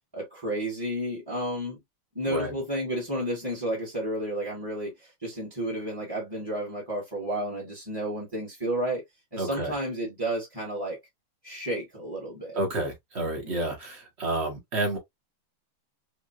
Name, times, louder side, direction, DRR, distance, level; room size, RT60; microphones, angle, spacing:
voice 1, 0.1-1.8 2.1-9.0 9.3-11.0 11.4-12.6 13.4-13.7, right 1 dB, 10° right, 1.4 m, -32 dB
voice 2, 9.4-9.7 12.5-15.0, right 1 dB, 35° right, 1.3 m, -30 dB
4.7 x 2.6 x 2.5 m
omnidirectional pair, 2.4 m